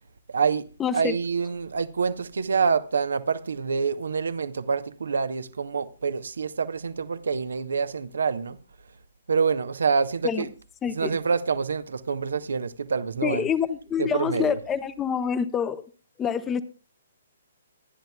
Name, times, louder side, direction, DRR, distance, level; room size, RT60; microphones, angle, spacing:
voice 1, 0.3-0.7 0.9-8.6 9.3-10.5 10.8-13.5 14.0-14.6, right 5 dB, 70° right, 0.9 m, -26 dB
voice 2, 0.8-1.1 10.2-10.5 10.8-11.1 13.2-15.8 16.2-16.6, left 7 dB, 15° left, 1.0 m, -26 dB
26.5 x 10.5 x 2.3 m
figure-of-eight pair, 130°, 0 cm